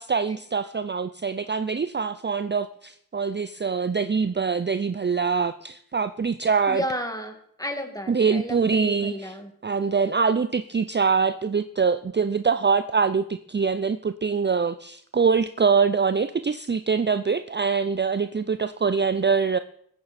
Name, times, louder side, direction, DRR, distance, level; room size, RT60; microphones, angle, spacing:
voice 1, 0.0-6.8 8.1-9.4 9.6-19.6, right 5 dB, 30° right, 12 dB, 0.5 m, -24 dB
voice 2, 6.7-9.5, equal, 10° left, 5 dB, 2.2 m, -32 dB
21.0 x 8.6 x 4.2 m, 0.64 s
wide cardioid pair, 50°, 34 cm